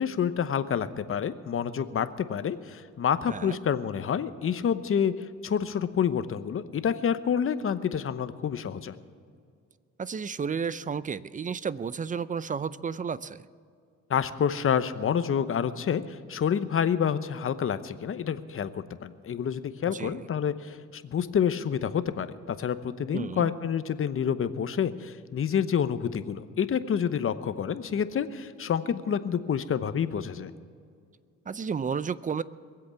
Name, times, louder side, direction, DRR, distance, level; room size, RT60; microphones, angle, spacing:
voice 1, 0.0-5.1 5.4-9.0 14.1-30.5, left 8 dB, 45° left, 12 dB, 0.9 m, -28 dB
voice 2, 10.0-13.4 19.9-20.2 23.1-23.5 31.5-32.4, right 6 dB, 25° right, 17 dB, 0.5 m, -32 dB
22.0 x 8.0 x 7.0 m, 2.3 s
cardioid pair, 90°, 30 cm